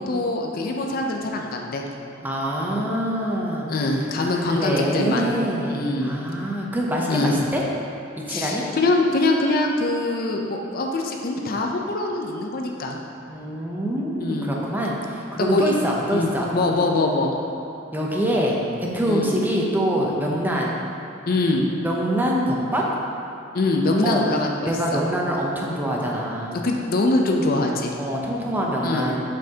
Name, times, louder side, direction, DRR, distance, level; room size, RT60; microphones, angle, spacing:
voice 1, 0.0-1.8 3.7-5.3 5.7-6.2 7.1-7.5 8.3-13.0 14.2-14.6 15.4-15.7 16.1-17.3 19.1-19.3 21.3-21.7 23.5-25.0 26.6-27.9 28.8-29.2, left 2 dB, 50° left, 1 dB, 0.5 m, -23 dB
voice 2, 2.2-3.7 4.2-7.6 8.3-8.7 13.3-16.5 17.9-20.8 21.8-22.8 24.0-24.2 24.6-26.6 28.0-29.2, equal, 10° right, -3 dB, 0.6 m, -25 dB
7.2 x 5.4 x 2.8 m, 2.8 s
head